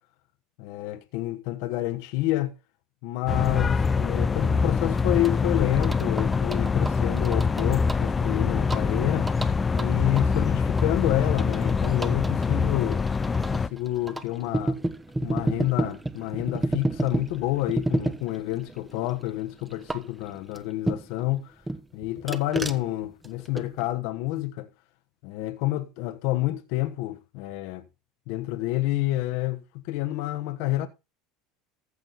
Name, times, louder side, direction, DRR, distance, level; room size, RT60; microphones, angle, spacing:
voice 1, 0.6-2.5 3.0-9.3 9.7-13.0 13.5-14.8 15.2-21.5 21.9-24.7 25.2-27.8 28.3-30.9, left 16 dB, 65° left, 1.1 m, -29 dB
sound 1, 3.3-13.7, left 5 dB, 25° left, 0.6 m, -24 dB
sound 2, 4.9-21.3 21.7-23.9, right 2 dB, 10° right, 1.2 m, -33 dB
14.5 x 6.1 x 4.0 m
hypercardioid pair, 80°, 0 cm